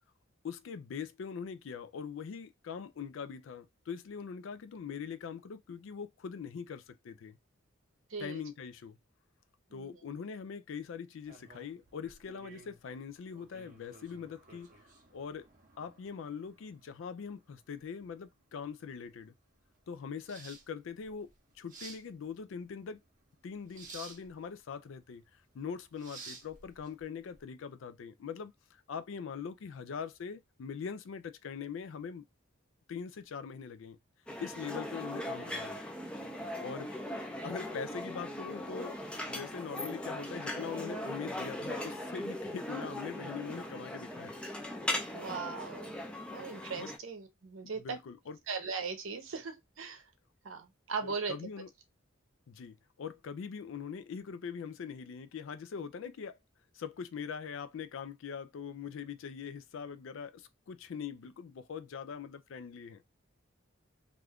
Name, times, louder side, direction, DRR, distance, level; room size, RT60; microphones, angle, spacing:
voice 1, 0.4-7.4 8.2-9.0 9.7-14.7 15.1-15.5 15.8-19.3 19.9-23.0 23.4-25.2 25.5-32.3 32.9-34.0 34.4-35.8 36.6-36.9 37.4-39.0 39.3-44.3 46.8-46.9 47.8-48.4 51.0-51.7 52.5-56.4 56.7-63.0, left 6 dB, 65° left, 0.4 m, -42 dB
voice 2, 8.1-8.4 9.7-10.0 36.6-36.7 45.1-45.9 46.3-48.0 48.5-50.1 50.4-51.3, right 5 dB, 75° right, 0.7 m, -39 dB
sound 1, 11.2-27.4, right 4 dB, 40° right, 0.7 m, -54 dB
sound 2, 34.3-47.0, left 1 dB, 5° left, 0.4 m, -39 dB
2.5 x 2.3 x 3.3 m
head